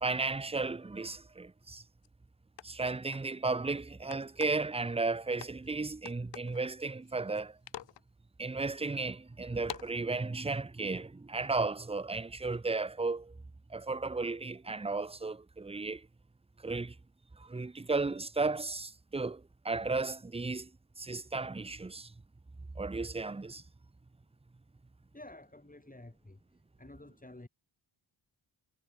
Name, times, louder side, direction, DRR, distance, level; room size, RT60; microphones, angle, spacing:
voice 1, 0.0-1.8 2.6-7.6 8.4-13.3 13.7-16.1 16.6-16.9 17.4-20.7 21.0-22.1 22.8-23.6, right 3 dB, 15° right, 0.6 m, -34 dB
sound 1, 2.0-2.1 2.6-3.3 4.1-4.7 5.4-5.7 6.0-6.6 7.0-7.4 7.7-8.0 8.6-8.7 9.6-9.9, left 12 dB, 65° left, 0.6 m, -45 dB
voice 2, 25.1-27.5, left 2 dB, 15° left, 3.9 m, -51 dB
wide cardioid pair, 95°, 48 cm